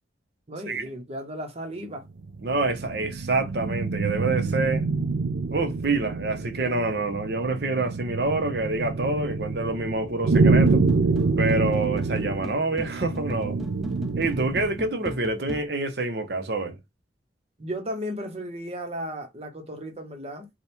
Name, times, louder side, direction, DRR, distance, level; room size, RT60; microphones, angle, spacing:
voice 1, 0.5-2.1 17.6-20.5, equal, 35° right, 0.9 m, -35 dB
sound 1, 2.2-14.8, right 3 dB, 90° right, 0.5 m, -26 dB
voice 2, 2.4-4.8 5.5-10.8 11.4-13.6 14.2-16.8, right 2 dB, 60° right, 0.8 m, -27 dB
sound 2, 10.3-15.6, left 1 dB, ahead, 0.4 m, -38 dB
3.4 x 2.3 x 4.3 m
head